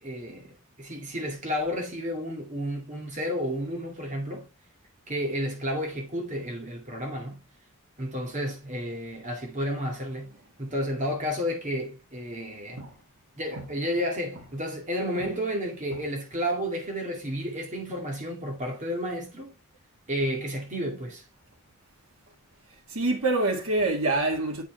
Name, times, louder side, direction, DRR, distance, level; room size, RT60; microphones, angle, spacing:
voice 1, 0.0-4.5 5.1-7.5 8.0-10.3 10.6-12.8 13.4-19.5 20.1-21.2, equal, 35° right, 2.0 m, -31 dB
voice 2, 22.9-24.6, right 2 dB, 90° right, 2.1 m, -26 dB
8.0 x 5.8 x 3.2 m
head